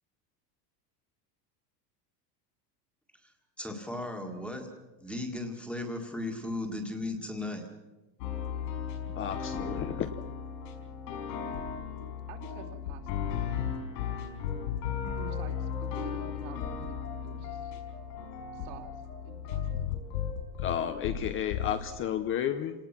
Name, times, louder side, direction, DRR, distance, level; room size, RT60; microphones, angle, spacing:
voice 1, 3.6-4.7 5.0-7.7, left 2 dB, ahead, 3 dB, 1.9 m, -36 dB
sound 1, 8.2-21.9, left 7 dB, 80° left, 5.3 m, -35 dB
voice 2, 9.2-10.1 20.6-22.7, left 10 dB, 25° left, 8 dB, 0.7 m, -32 dB
voice 3, 12.3-13.3 15.2-16.9 17.2-17.7 18.5-18.9 19.2-19.9, right 7 dB, 55° right, 3 dB, 3.2 m, -48 dB
27.5 x 19.0 x 6.0 m, 1.1 s
supercardioid pair, 165°, 49 cm